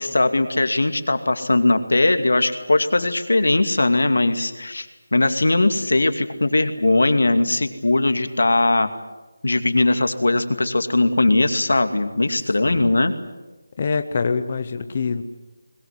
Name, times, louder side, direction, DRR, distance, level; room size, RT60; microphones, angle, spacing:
voice 1, 0.0-8.9 9.4-13.1, left 2 dB, 90° left, 8 dB, 2.5 m, -19 dB
voice 2, 12.6-12.9 13.8-15.2, left 5 dB, 20° left, 9 dB, 0.7 m, -25 dB
21.5 x 21.0 x 9.7 m, 1.1 s
figure-of-eight pair, 180°, 0 cm